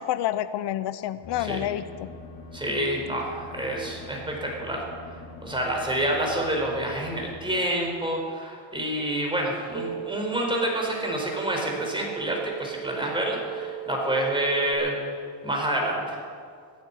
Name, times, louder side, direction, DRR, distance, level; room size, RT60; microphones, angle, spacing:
voice 1, 0.1-2.1, left 12 dB, 65° left, 13 dB, 0.7 m, -28 dB
sound 1, 1.2-7.5, left 3 dB, 80° left, 3.9 m, -43 dB
voice 2, 2.5-4.8 5.4-14.9 15.4-16.2, right 1 dB, 10° right, 0 dB, 4.4 m, -28 dB
sound 2, 9.7-14.7, right 13 dB, 70° right, 2.3 m, -37 dB
14.5 x 9.7 x 9.8 m, 2.2 s
cardioid pair, 125°, 44 cm